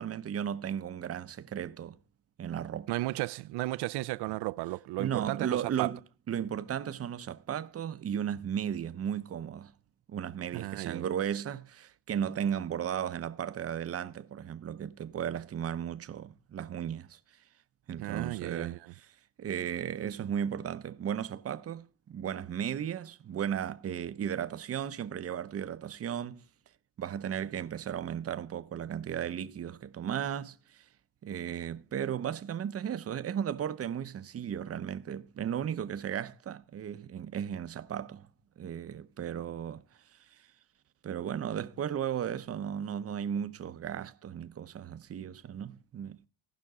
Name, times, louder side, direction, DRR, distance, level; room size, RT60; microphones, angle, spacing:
voice 1, 0.0-2.0 2.4-3.0 5.0-6.0 6.3-9.7 10.1-17.2 17.9-19.1 19.4-26.4 27.0-30.8 31.2-38.3 38.6-39.8 40.1-40.2 41.0-46.3, right 9 dB, 35° right, 0.8 m, -35 dB
voice 2, 2.9-5.9 10.5-11.1 18.0-18.8, right 19 dB, 80° right, 0.6 m, -34 dB
17.5 x 6.0 x 3.6 m
cardioid pair, 115°, 39 cm